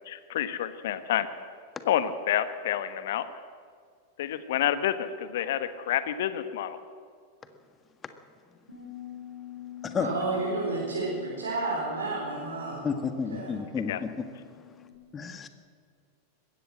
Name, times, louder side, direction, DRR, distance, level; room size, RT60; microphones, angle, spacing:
voice 1, 0.1-1.3 1.9-3.3 4.2-6.8 13.9-14.0, left 11 dB, 55° left, 12 dB, 1.4 m, -28 dB
Bass guitar, 8.7-14.9, left 11 dB, 85° right, 5.8 m, -46 dB
voice 2, 10.0-12.9 13.3-13.7, right 3 dB, 70° right, -3 dB, 4.6 m, -31 dB
voice 3, 12.8-14.3 14.5-14.8 15.1-15.5, left 6 dB, 20° left, 9 dB, 1.6 m, -32 dB
21.0 x 16.0 x 7.6 m, 2.1 s
figure-of-eight pair, 90°, 0 cm